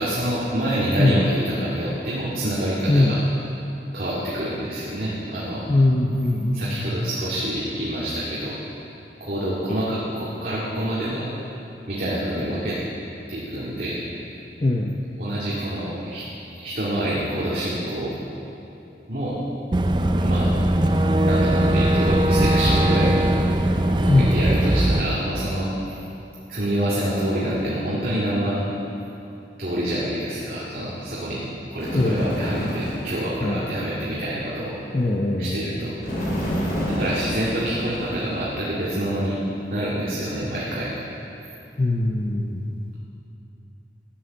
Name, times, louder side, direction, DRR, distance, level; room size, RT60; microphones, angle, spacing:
voice 1, 0.0-3.2 3.9-5.7 6.5-8.6 9.2-11.3 11.9-12.8 13.3-14.0 15.2-16.3 16.6-18.2 19.1-19.4 20.2-20.5 21.2-23.3 24.0-25.7 26.5-28.6 29.6-31.4 31.7-34.8 35.4-35.9 36.9-39.3 39.7-40.9, right 1 dB, 55° right, -9 dB, 2.1 m, -26 dB
voice 2, 5.7-6.9 14.6-15.0 24.1-24.3 31.9-32.2 33.4-33.6 34.9-35.6 41.8-42.6, left 2 dB, 35° left, 0 dB, 0.6 m, -21 dB
Boat Water vehicle / Engine, 19.7-25.0, right 1 dB, 25° right, 0.4 m, -20 dB
Bird, 31.8-33.2 36.0-38.5, equal, 50° left, 3.2 m, -28 dB
13.0 x 8.9 x 6.8 m, 2.8 s
head